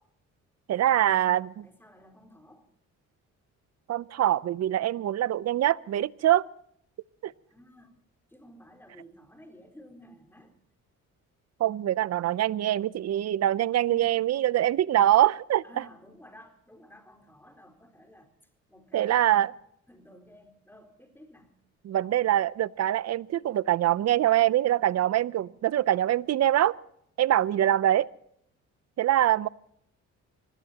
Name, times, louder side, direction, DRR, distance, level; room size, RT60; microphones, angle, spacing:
voice 1, 0.7-1.7 3.9-6.4 7.2-7.3 11.6-15.8 18.9-19.5 21.8-26.7 27.2-28.1 29.0-29.5, right 12 dB, 60° right, 0.7 m, -24 dB
voice 2, 1.6-2.7 7.5-7.9 8.3-10.5 13.8-14.1 15.6-18.3 18.7-19.5 19.9-21.6, equal, 5° left, 4.4 m, -53 dB
25.0 x 19.5 x 2.9 m
cardioid pair, 90°, 30 cm